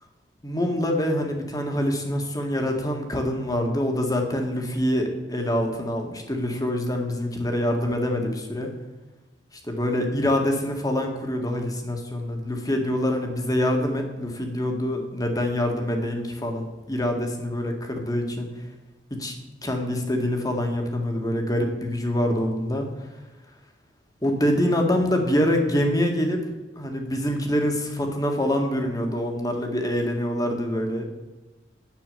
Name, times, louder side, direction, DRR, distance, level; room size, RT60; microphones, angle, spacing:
voice 1, 0.4-8.7 9.7-18.5 19.1-19.3 19.6-22.9 24.2-26.4 26.8-31.1, left 1 dB, 20° left, 3 dB, 1.9 m, -25 dB
9.7 x 8.7 x 6.8 m, 1.2 s
head